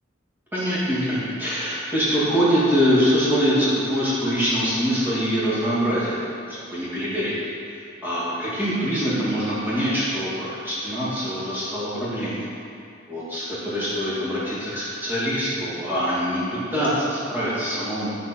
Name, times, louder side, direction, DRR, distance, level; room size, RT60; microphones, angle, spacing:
voice 1, 0.5-7.4 7.7-12.5 13.1-18.1, equal, 10° right, -11 dB, 2.4 m, -24 dB
11.0 x 6.0 x 4.5 m, 2.5 s
head